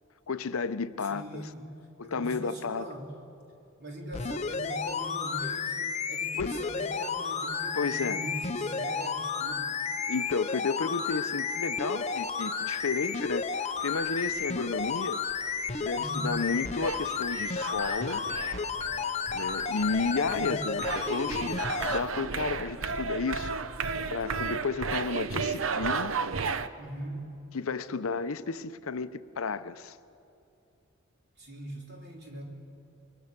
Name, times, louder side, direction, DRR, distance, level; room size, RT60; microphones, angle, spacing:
voice 1, 0.3-1.5 2.0-2.8 6.4-6.6 7.7-8.2 10.1-15.2 15.8-18.3 19.3-23.6 24.1-26.1 27.5-30.0, left 4 dB, 75° left, 0.7 m, -32 dB
voice 2, 1.1-1.7 2.0-3.1 3.8-9.7 16.0-16.4 20.3-20.6 26.8-27.3 31.4-32.4, equal, 50° right, 3.8 m, -41 dB
sound 1, 4.1-22.0 22.6-22.7, left 5 dB, 30° left, 0.7 m, -32 dB
Wind instrument woodwind instrument, 7.5-12.7, right 2 dB, 25° right, 4.6 m, -47 dB
sound 2, 13.6-14.5 14.8-26.7, right 5 dB, 65° right, 0.7 m, -35 dB
26.0 x 22.0 x 6.7 m
head